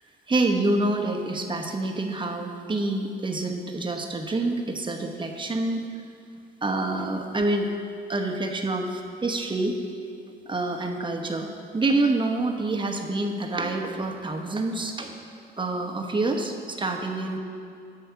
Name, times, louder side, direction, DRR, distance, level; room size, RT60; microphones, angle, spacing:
voice 1, 0.3-5.8 6.6-7.7 8.1-9.8 10.5-15.1 15.6-17.4, right 2 dB, 25° right, 3 dB, 1.1 m, -27 dB
8.6 x 6.2 x 7.0 m, 2.4 s
cardioid pair, 90°, 20 cm